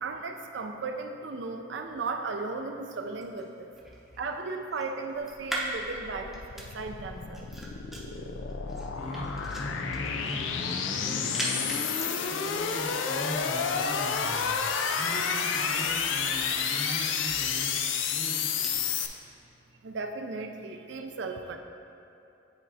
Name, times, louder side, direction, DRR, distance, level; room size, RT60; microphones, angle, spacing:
voice 1, 0.0-3.7 4.2-7.5 19.8-21.6, right 3 dB, 70° right, 5 dB, 0.4 m, -36 dB
sound 1, 3.0-18.8, right 1 dB, ahead, 0.6 m, -43 dB
sound 2, 5.4-19.1, left 6 dB, 85° left, 0.4 m, -30 dB
voice 2, 9.0-11.7 12.3-14.5 14.9-17.7 18.1-18.7, equal, 40° left, -3 dB, 0.9 m, -40 dB
9.6 x 4.2 x 2.7 m, 2.8 s
head